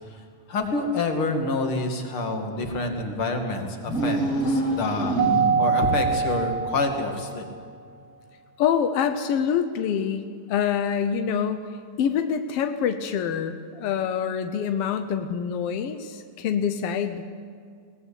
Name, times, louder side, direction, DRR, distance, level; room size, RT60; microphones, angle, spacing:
voice 1, 0.5-4.2 4.5-5.2 5.6-7.5, left 2 dB, 45° left, 4 dB, 2.8 m, -27 dB
sound 1, 3.8-5.8, right 1 dB, 25° left, 4.2 m, -26 dB
Keyboard (musical), 5.2-7.4, right 6 dB, 65° right, 1.5 m, -24 dB
voice 2, 8.6-10.2 10.5-11.7 12.0-17.2, left 8 dB, 75° left, 8 dB, 1.4 m, -26 dB
22.0 x 18.5 x 8.5 m, 2.2 s
omnidirectional pair, 3.8 m